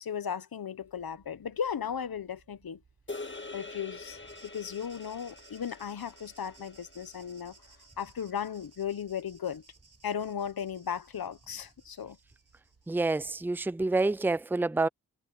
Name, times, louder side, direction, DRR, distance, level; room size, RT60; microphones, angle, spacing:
voice 1, 0.0-2.8 3.5-7.5 8.0-9.6 10.0-12.2, left 8 dB, 80° left, 1.2 m, -36 dB
sound 1, 0.8-14.3, right 4 dB, 65° right, 7.0 m, -66 dB
sound 2, 3.1-7.5, left 3 dB, 30° left, 2.2 m, -45 dB
sound 3, 4.3-13.2, right 4 dB, 45° right, 5.5 m, -60 dB
voice 2, 12.9-14.9, right 3 dB, 5° right, 0.5 m, -28 dB
cardioid pair, 65°, 35 cm